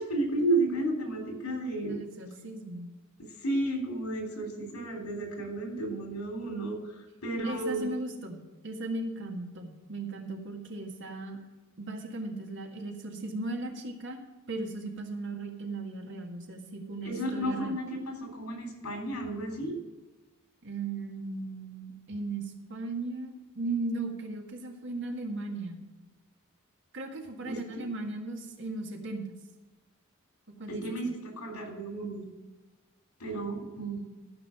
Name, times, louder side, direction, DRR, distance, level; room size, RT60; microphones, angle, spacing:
voice 1, 0.0-2.0 3.4-7.9 17.0-19.8 27.5-27.8 30.7-32.3 33.2-34.0, right 2 dB, 90° left, 2 dB, 3.3 m, -32 dB
voice 2, 1.8-2.9 7.4-11.4 11.8-14.2 14.5-17.8 20.6-25.9 26.9-29.3 30.6-31.0, right 2 dB, 60° right, 2 dB, 1.8 m, -37 dB
13.0 x 5.4 x 7.0 m, 1.2 s
head